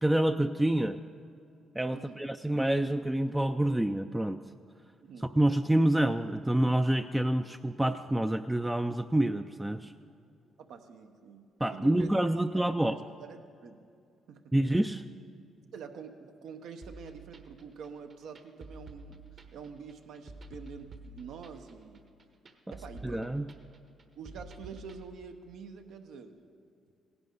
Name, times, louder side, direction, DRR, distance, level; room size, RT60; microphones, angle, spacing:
voice 1, 0.0-1.0 1.8-4.4 5.4-9.9 11.6-13.0 14.5-15.0 23.0-23.5, right 1 dB, 10° right, 8 dB, 0.3 m, -27 dB
voice 2, 1.9-2.2 5.0-5.3 10.6-13.8 14.3-14.5 15.7-22.0 22.7-23.5 24.2-26.4, right 6 dB, 75° right, 6 dB, 0.9 m, -47 dB
sound 1, 16.8-25.0, right 2 dB, 45° right, 1.2 m, -49 dB
17.0 x 11.0 x 3.9 m, 2.4 s
cardioid pair, 90°, 0 cm